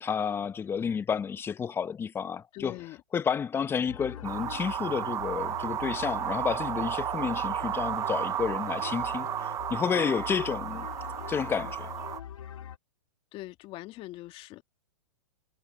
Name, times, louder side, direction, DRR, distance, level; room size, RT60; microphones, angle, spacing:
voice 1, 0.0-2.8 3.1-10.9 11.3-11.9, left 7 dB, 15° left, 0.8 m, -31 dB
voice 2, 2.5-3.0 13.3-14.6, left 17 dB, 35° left, 1.9 m, -42 dB
sound 1, 3.9-12.8, left 9 dB, 80° left, 3.2 m, -43 dB
sound 2, 4.2-12.2, right 11 dB, 20° right, 0.5 m, -33 dB
hypercardioid pair, 130°, 17 cm